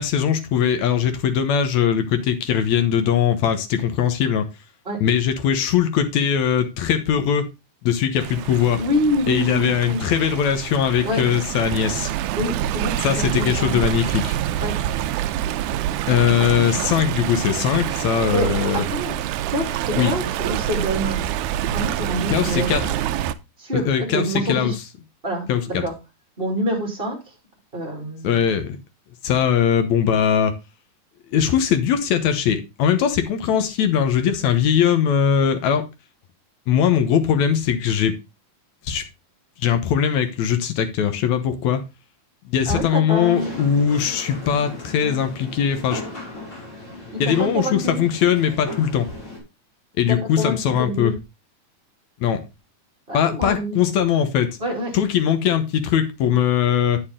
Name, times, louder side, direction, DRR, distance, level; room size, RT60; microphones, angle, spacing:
voice 1, 0.0-4.5 5.0-7.5 7.8-8.8 9.3-12.1 13.0-14.4 16.1-18.8 20.0-20.1 22.3-22.9 23.7-24.7 25.5-25.6 28.2-28.8 29.2-30.5 31.3-35.8 36.7-38.2 38.8-39.0 39.6-41.8 42.5-46.0 47.2-49.1 50.0-51.1 52.2-52.4 53.1-54.6 54.9-57.0, left 8 dB, 70° left, 8 dB, 2.2 m, -20 dB
Stream, 8.2-23.3, right 12 dB, 80° right, 2.0 m, -26 dB
voice 2, 8.8-10.0 11.0-11.2 12.4-13.8 14.6-14.8 18.3-19.1 19.5-21.2 21.7-22.9 23.6-24.8 25.2-25.9 26.4-27.2 27.7-28.4 42.7-43.5 47.1-48.0 50.1-51.1 53.1-53.8 54.6-55.0, equal, 20° right, 0 dB, 2.7 m, -26 dB
sound 1, 43.2-49.4, left 2 dB, 35° left, 5.2 m, -36 dB
9.4 x 6.8 x 3.6 m, 0.25 s
omnidirectional pair, 3.5 m